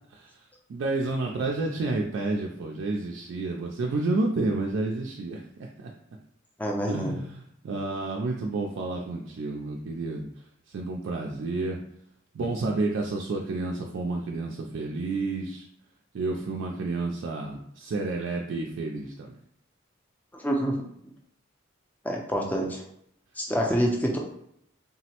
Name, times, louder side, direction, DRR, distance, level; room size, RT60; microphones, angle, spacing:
voice 1, 0.7-5.9 6.8-10.3 10.7-11.8 12.3-15.6 16.1-19.4, right 3 dB, 65° right, 0 dB, 0.3 m, -30 dB
voice 2, 6.6-7.1 20.3-20.8 22.0-22.9 23.4-24.2, equal, 10° left, 0 dB, 0.4 m, -27 dB
3.7 x 2.0 x 2.8 m, 0.73 s
head